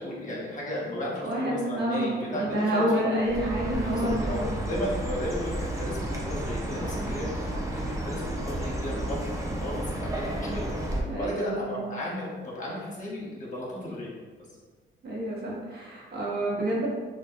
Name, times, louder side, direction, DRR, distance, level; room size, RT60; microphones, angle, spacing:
voice 1, 0.0-3.0 3.9-10.7 11.1-14.1, left 1 dB, 40° left, -5 dB, 0.8 m, -34 dB
voice 2, 1.2-4.5 11.1-11.8 15.0-16.9, right 1 dB, 55° right, -5 dB, 0.9 m, -28 dB
Chirp tweet, 3.2-11.0, right 1 dB, 15° right, 0.4 m, -32 dB
2.6 x 2.2 x 2.4 m, 1.4 s
cardioid pair, 90°, 20 cm